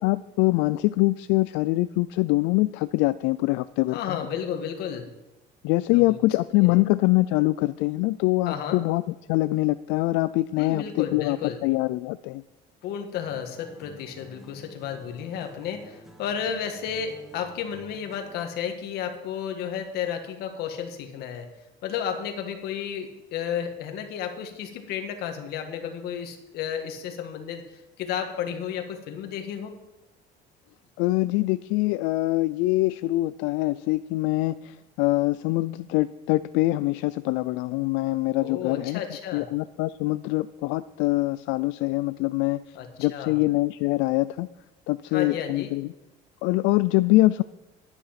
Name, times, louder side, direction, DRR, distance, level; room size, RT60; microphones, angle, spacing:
voice 1, 0.0-4.3 5.6-9.0 9.3-11.4 11.6-12.4 31.0-39.0 39.3-44.5 44.9-45.9 46.4-47.4, left 19 dB, 80° left, 14 dB, 0.4 m, -24 dB
voice 2, 3.9-5.1 5.9-6.2 6.6-6.8 8.5-8.8 10.6-11.6 12.8-21.5 21.8-27.6 28.0-29.7 38.4-39.5 42.7-43.4 45.1-45.7, left 8 dB, 60° left, 5 dB, 1.7 m, -32 dB
sound 1, 13.2-18.6, equal, ahead, 1.2 m, -50 dB
10.5 x 9.7 x 5.8 m, 1.0 s
cardioid pair, 175°, 19 cm